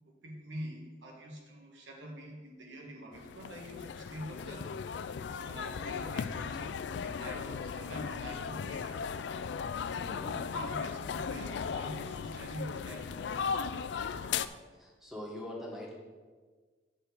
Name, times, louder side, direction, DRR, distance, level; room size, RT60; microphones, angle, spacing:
voice 1, 0.2-4.8 5.4-9.0 10.4-13.4, right 1 dB, 75° right, 0 dB, 1.6 m, -45 dB
sound 1, 3.1-14.5, left 6 dB, 65° left, 0.3 m, -37 dB
voice 2, 9.9-10.4 14.7-15.9, left 1 dB, ahead, -3 dB, 1.6 m, -43 dB
7.5 x 4.9 x 6.6 m, 1.4 s
head